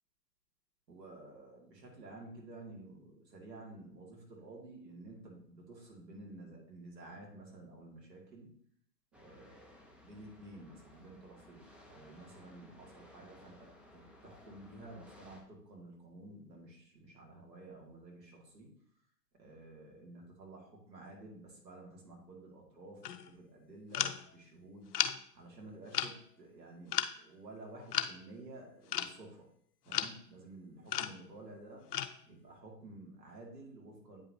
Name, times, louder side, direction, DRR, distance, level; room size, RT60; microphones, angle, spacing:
voice 1, 0.9-8.5 9.2-18.7 19.4-24.9 25.3-29.5 29.8-31.9 32.3-34.2, right 2 dB, 85° right, -1 dB, 2.3 m, -52 dB
sound 1, 9.1-15.4, left 1 dB, ahead, 0.6 m, -59 dB
sound 2, 23.0-23.3 23.9-24.2 24.9-25.2 25.9-26.1 26.9-27.1 27.9-28.1 28.9-29.2 29.9-30.1 30.9-31.3 31.9-32.2, left 10 dB, 65° left, 0.7 m, -34 dB
8.6 x 5.1 x 2.8 m, 0.65 s
hypercardioid pair, 110°, 49 cm